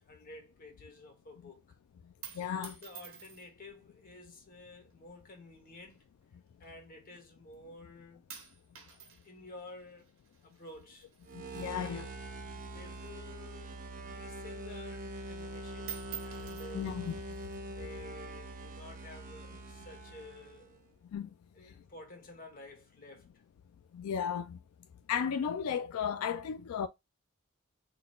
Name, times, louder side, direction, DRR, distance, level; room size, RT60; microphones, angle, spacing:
voice 1, 0.0-1.8 2.3-6.0 6.6-8.5 8.7-10.1 10.4-11.1 11.6-12.2 12.7-17.0 17.7-20.8 21.5-23.3, left 2 dB, 45° left, 1.2 m, -52 dB
sound 1, 2.0-3.7 4.5-5.0 5.8-7.2 7.5-7.9 8.3-12.4 12.6-14.3 14.7-14.8 15.1-15.5 15.8-17.6 18.4-19.0, right 9 dB, 85° right, 1.5 m, -50 dB
voice 2, 2.3-2.7 11.3-12.1 16.7-17.1 21.1-21.3 23.9-24.6 25.1-26.9, left 7 dB, 90° left, 0.3 m, -34 dB
sound 2, 11.2-20.8, right 1 dB, 40° right, 0.7 m, -44 dB
3.8 x 2.3 x 3.7 m
head